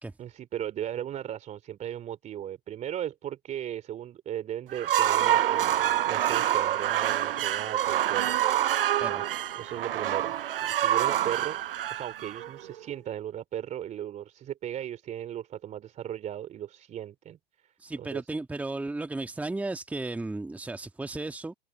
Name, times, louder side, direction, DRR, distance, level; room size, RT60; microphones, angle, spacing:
voice 1, 0.2-8.4 9.5-11.6 11.9-17.4 17.6-18.2, right 11 dB, 25° right, 3.0 m, -37 dB
sound 1, 4.7-12.8, right 12 dB, 65° right, 0.7 m, -26 dB
voice 2, 17.8-21.5, right 2 dB, 5° right, 1.8 m, -34 dB
figure-of-eight pair, 110°, 30 cm